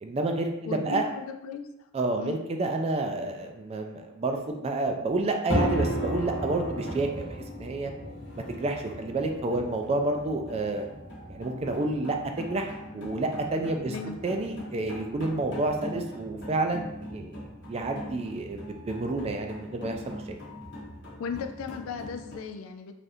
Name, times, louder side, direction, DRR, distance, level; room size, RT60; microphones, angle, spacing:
voice 1, 0.0-1.1 1.9-7.9 8.5-10.9 11.3-13.9 14.2-17.4 17.7-20.4, right 2 dB, 30° right, 4 dB, 0.3 m, -29 dB
voice 2, 0.7-1.6 2.2-2.4 13.9-14.2 21.2-22.9, left 6 dB, 80° left, 6 dB, 0.3 m, -36 dB
sound 1, 5.5-22.4, equal, 60° left, 0.9 m, -37 dB
3.3 x 2.4 x 2.6 m, 0.87 s
head